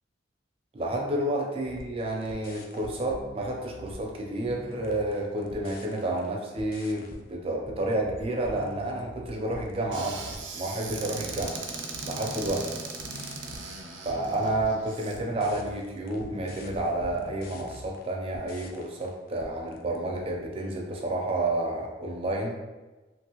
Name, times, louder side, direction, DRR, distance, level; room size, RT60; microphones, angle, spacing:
voice 1, 0.7-11.6 12.0-12.8 14.0-22.5, right 1 dB, 30° right, 0 dB, 0.4 m, -30 dB
sound 1, 1.6-6.3 6.6-20.0, left 1 dB, 50° left, 0.4 m, -45 dB
Squeak / Cupboard open or close, 9.9-15.2, right 4 dB, 90° right, 0.5 m, -38 dB
2.8 x 2.6 x 2.8 m, 1.2 s
head